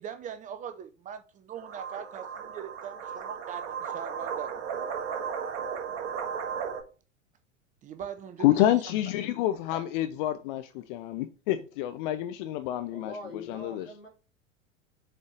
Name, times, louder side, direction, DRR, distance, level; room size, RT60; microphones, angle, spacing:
voice 1, 0.0-4.6 7.8-8.5, right 8 dB, 20° right, 0.6 m, -41 dB
sound 1, 1.6-6.8, right 7 dB, 45° right, 1.7 m, -35 dB
voice 2, 8.4-13.9, left 13 dB, 40° left, 0.7 m, -28 dB
voice 3, 12.9-14.1, left 2 dB, 85° left, 2.8 m, -43 dB
6.7 x 4.3 x 4.6 m
figure-of-eight pair, 85°, 38 cm